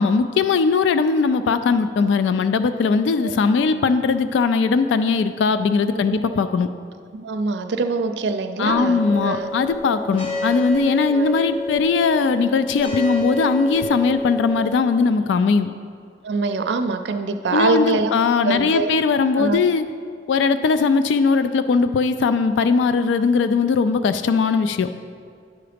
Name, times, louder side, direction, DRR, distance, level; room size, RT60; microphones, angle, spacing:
voice 1, 0.0-6.7 8.6-15.7 17.5-19.8 20.3-24.9, left 4 dB, 85° left, 11 dB, 0.3 m, -19 dB
voice 2, 7.1-9.5 11.1-11.3 16.2-18.1 18.4-18.9 19.4-19.6, right 3 dB, 70° right, 8 dB, 0.4 m, -24 dB
sound 1, 8.6-14.7, left 1 dB, 30° left, 0.9 m, -29 dB
10.5 x 3.9 x 5.0 m, 2.2 s
head